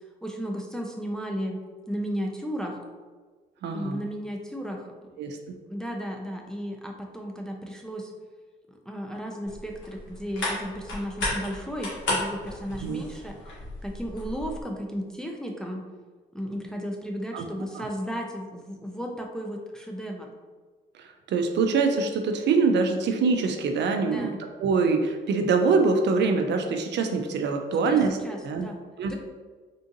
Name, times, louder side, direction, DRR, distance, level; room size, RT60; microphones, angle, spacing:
voice 1, 0.2-1.6 1.9-2.8 3.7-4.9 5.7-8.1 8.7-15.9 16.3-20.3 24.0-24.4 27.9-28.8 29.1-29.2, equal, 5° left, 1 dB, 0.4 m, -34 dB
voice 2, 3.6-4.0 5.2-5.6 12.8-13.0 17.3-17.5 17.7-17.8 21.0-24.3 24.6-28.2 28.4-28.7 29.0-29.2, right 4 dB, 60° right, 5 dB, 0.4 m, -24 dB
sound 1, 9.5-14.6, left 2 dB, 70° left, 1.2 m, -34 dB
3.6 x 2.5 x 2.5 m, 1.4 s
cardioid pair, 90°, 20 cm